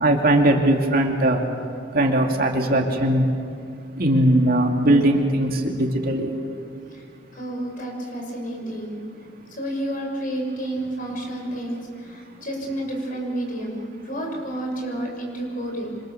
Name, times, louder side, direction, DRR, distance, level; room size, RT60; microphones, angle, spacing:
voice 1, 0.0-1.4 1.9-3.2 4.0-6.3, right 1 dB, 50° right, 2 dB, 2.5 m, -19 dB
voice 2, 7.3-9.0 9.5-16.0, right 1 dB, 45° left, 1 dB, 6.4 m, -30 dB
27.5 x 26.0 x 7.0 m, 2.3 s
head